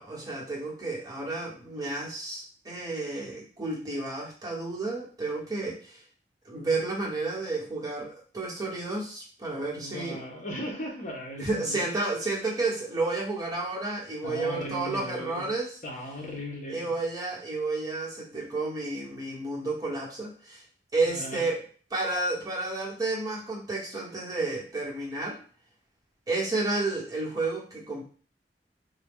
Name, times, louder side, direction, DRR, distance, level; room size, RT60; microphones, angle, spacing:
voice 1, 0.0-6.0 6.4-10.2 11.4-15.7 16.7-20.6 20.9-21.6 21.9-25.4 26.3-28.0, right 2 dB, 20° right, -3 dB, 1.1 m, -31 dB
voice 2, 9.7-11.8 14.2-15.5 15.8-16.9 21.1-21.4, equal, 45° left, 1 dB, 1.0 m, -37 dB
3.9 x 2.3 x 3.6 m, 0.41 s
head